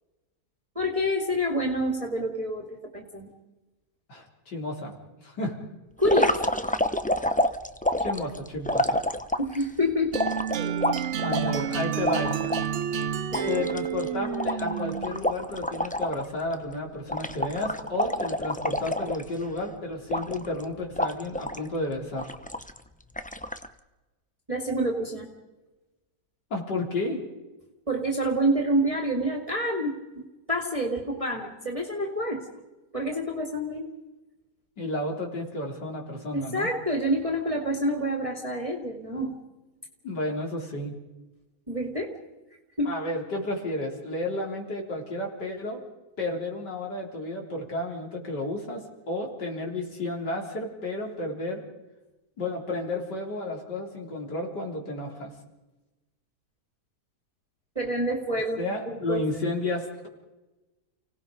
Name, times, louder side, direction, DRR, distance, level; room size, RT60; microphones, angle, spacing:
voice 1, 0.8-3.3 6.0-6.5 9.4-10.2 10.5-10.9 13.3-13.6 24.5-25.3 27.9-32.5 32.9-33.9 36.3-39.4 41.7-42.1 42.8-43.0 57.8-59.2, equal, 20° right, 1 dB, 2.4 m, -28 dB
voice 2, 4.1-5.6 8.0-9.0 11.2-12.6 13.5-22.3 26.5-27.2 34.8-36.7 40.0-40.9 42.9-45.8 46.2-51.6 52.4-55.3 58.6-60.1, left 2 dB, 80° left, 0 dB, 4.3 m, -32 dB
sound 1, 6.0-9.6 10.1-12.7 13.0-13.1 13.3-16.3 16.5-16.7 17.1-19.6 20.1-20.6 21.0-21.7 22.2-22.8 23.2-23.7, left 1 dB, 10° left, 0.5 m, -28 dB
sound 2, 10.1-15.2, right 8 dB, 50° right, 0.9 m, -30 dB
30.0 x 18.5 x 5.2 m, 1.1 s
omnidirectional pair, 1.8 m